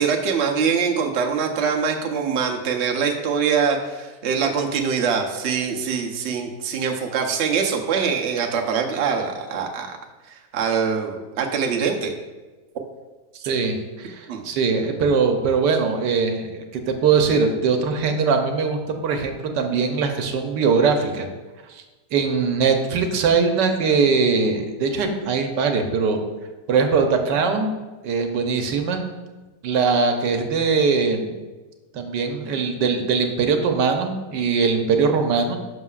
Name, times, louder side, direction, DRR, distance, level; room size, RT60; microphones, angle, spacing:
voice 1, 0.0-10.0 10.3-12.1 14.3-14.4, right 6 dB, 50° right, 2 dB, 0.9 m, -23 dB
voice 2, 13.4-21.3 21.7-21.8 22.1-26.2 26.7-27.7 28.0-29.1 29.6-31.3 31.9-35.6, right 5 dB, 90° right, 4 dB, 1.4 m, -21 dB
11.0 x 6.4 x 2.4 m, 1.2 s
omnidirectional pair, 1.8 m